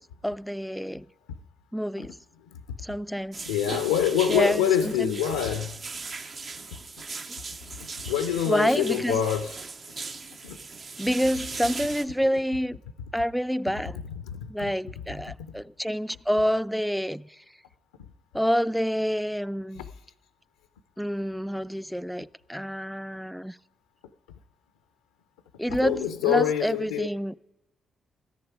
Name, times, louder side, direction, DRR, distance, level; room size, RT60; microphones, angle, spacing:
voice 1, 0.2-1.1 1.7-2.2 2.8-3.5 4.3-5.2 8.5-9.2 11.0-12.8 13.1-14.0 14.5-17.4 18.3-19.8 21.0-23.6 25.6-27.3, equal, ahead, 0.3 m, -28 dB
sound 1, 3.3-12.0, right 4 dB, 50° right, 0.8 m, -38 dB
voice 2, 3.5-5.8 8.0-9.5 10.4-10.6 14.3-14.7 15.4-15.5 19.7-19.8 25.7-27.1, left 9 dB, 85° left, 0.4 m, -26 dB
13.5 x 10.5 x 4.8 m
hypercardioid pair, 40°, 0 cm